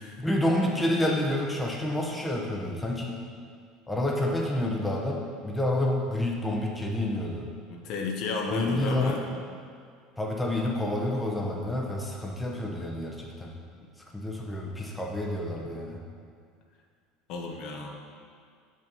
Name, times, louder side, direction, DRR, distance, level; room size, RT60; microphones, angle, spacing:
voice 1, 0.2-3.2 3.9-7.5 8.5-9.2 10.2-13.5 14.1-16.0, left 1 dB, 5° left, -2 dB, 0.9 m, -29 dB
voice 2, 7.7-9.3 17.3-17.9, left 4 dB, 60° left, 1 dB, 0.9 m, -33 dB
5.4 x 5.3 x 5.4 m, 2.2 s
supercardioid pair, 125°, 0 cm